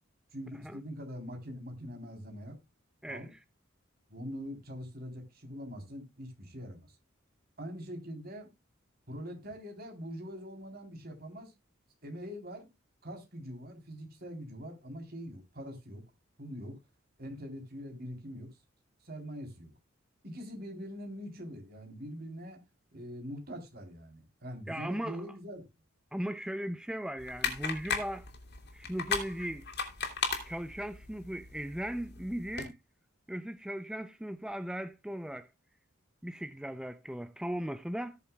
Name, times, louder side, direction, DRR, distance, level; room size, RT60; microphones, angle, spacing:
voice 1, 0.3-2.6 3.1-3.3 4.1-7.0 7.6-8.5 9.1-11.5 12.0-12.7 13.0-16.0 16.4-16.8 17.2-18.5 19.0-19.7 20.2-22.6 22.9-25.6, equal, 50° right, 3.6 m, -43 dB
voice 2, 24.7-25.2 26.1-28.3 28.7-29.7 30.4-32.8 33.3-35.5 36.2-38.2, equal, 5° right, 0.4 m, -37 dB
sound 1, 27.2-32.7, left 5 dB, 55° left, 2.9 m, -37 dB
18.5 x 7.0 x 2.3 m
head